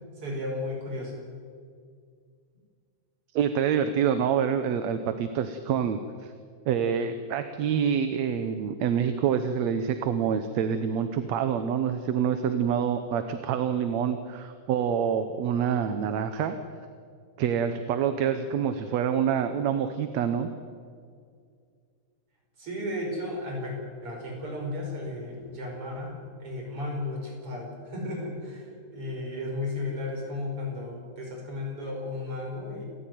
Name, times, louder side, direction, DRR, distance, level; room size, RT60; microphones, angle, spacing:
voice 1, 0.2-1.2 22.6-32.8, left 2 dB, 50° right, 0 dB, 6.5 m, -34 dB
voice 2, 3.3-6.3 6.7-16.6 17.4-20.5, right 8 dB, 70° right, 9 dB, 2.2 m, -26 dB
29.0 x 14.5 x 9.4 m, 2.2 s
omnidirectional pair, 3.3 m